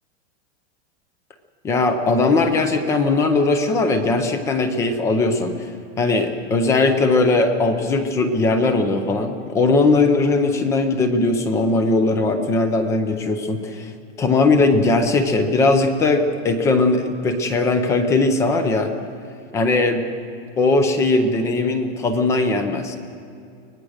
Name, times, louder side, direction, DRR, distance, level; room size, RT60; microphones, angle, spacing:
voice 1, 1.6-5.7 6.0-13.9 14.2-18.9 19.5-20.0 20.6-23.0, left 3 dB, 10° left, 8 dB, 0.5 m, -19 dB
24.0 x 18.5 x 6.4 m, 2.6 s
supercardioid pair, 175°, 37 cm